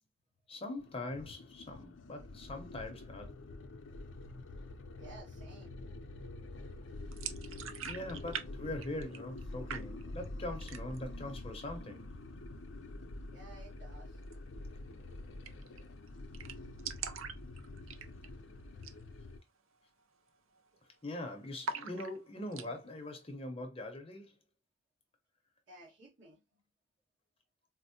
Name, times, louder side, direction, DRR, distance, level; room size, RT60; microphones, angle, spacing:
voice 1, 0.5-3.3 7.8-12.1 21.0-24.4, left 1 dB, 30° left, 0.6 m, -42 dB
sound 1, 0.8-19.4, left 2 dB, 70° left, 0.5 m, -47 dB
voice 2, 5.0-5.8 13.3-14.2 25.7-26.6, right 2 dB, 65° right, 1.4 m, -55 dB
sound 2, 7.1-8.5 8.7-9.4 9.7-10.3 10.6-11.1 11.5-11.6 11.9-12.5 14.2-14.4 14.7-14.8 15.0-15.1 15.4-15.8 16.1-16.2 16.3-18.4 18.7-19.0 19.4-19.5 20.0-20.3 20.5-21.1 21.6-22.7, right 6 dB, 85° right, 0.5 m, -43 dB
4.2 x 2.0 x 2.7 m
head